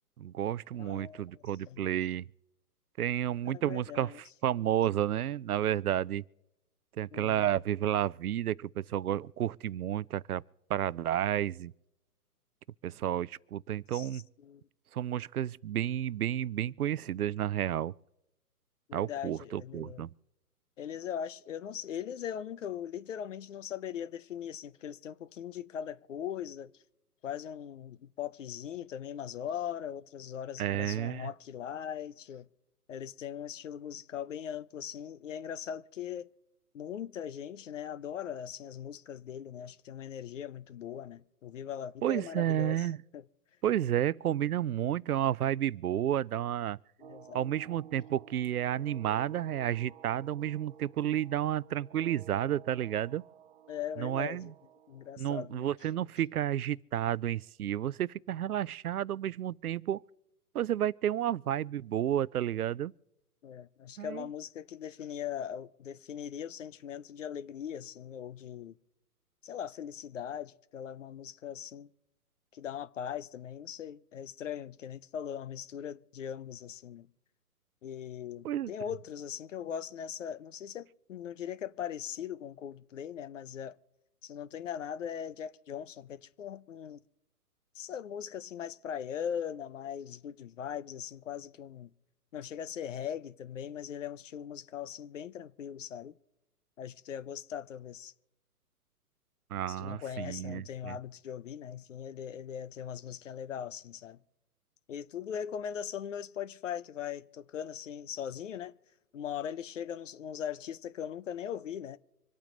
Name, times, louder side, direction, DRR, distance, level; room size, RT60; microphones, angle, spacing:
voice 1, 0.2-2.3 3.0-6.2 7.0-10.4 10.7-11.7 12.8-14.2 14.9-17.9 18.9-20.1 30.6-31.3 42.0-43.0 43.6-46.8 47.3-53.2 54.0-54.5 55.2-60.0 60.5-62.9 64.0-64.3 78.4-78.7 99.5-101.0, right 11 dB, 70° right, 0.5 m, -31 dB
voice 2, 0.8-1.9 3.5-4.2 7.1-7.5 13.9-14.6 18.9-20.1 20.8-26.7 27.2-32.5 32.9-36.3 36.7-42.9 43.1-43.2 47.0-47.4 53.7-54.5 54.9-55.6 63.4-68.8 69.4-71.9 72.5-77.1 77.8-83.8 84.2-87.0 87.7-91.9 92.3-96.2 96.8-98.1 99.7-104.2 104.9-108.8 109.1-112.0, left 9 dB, 55° left, 0.7 m, -40 dB
sound 1, 47.0-55.1, right 9 dB, 40° right, 0.8 m, -53 dB
26.0 x 8.8 x 3.9 m
figure-of-eight pair, 130°, 46 cm